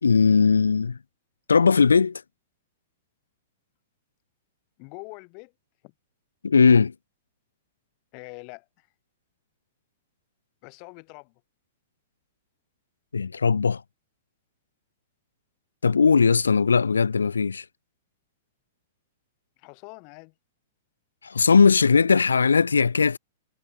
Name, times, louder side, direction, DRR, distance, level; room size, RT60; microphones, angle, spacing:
voice 1, 0.0-1.0 1.5-2.2 6.4-6.9 13.1-13.8 15.8-17.6 21.2-23.2, left 5 dB, 80° left, 1.8 m, -19 dB
voice 2, 4.8-5.5 5.8-5.9 8.1-8.9 10.6-11.3 19.6-20.3, left 38 dB, 45° left, 4.1 m, -44 dB
figure-of-eight pair, 105°, 0 cm